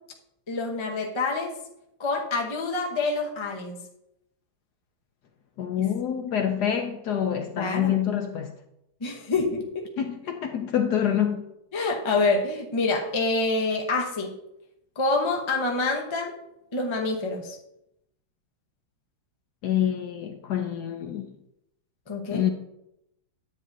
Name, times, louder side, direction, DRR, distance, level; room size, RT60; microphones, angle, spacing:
voice 1, 0.5-1.5 2.0-3.8 7.6-7.9 9.0-9.9 11.7-14.4 15.0-16.3 16.7-17.6 22.1-22.4, left 3 dB, 30° left, 0.5 m, -27 dB
voice 2, 5.6-8.5 10.0-11.5 19.6-21.3 22.3-22.5, left 9 dB, 70° left, 1.0 m, -26 dB
10.5 x 8.6 x 2.7 m
omnidirectional pair, 2.2 m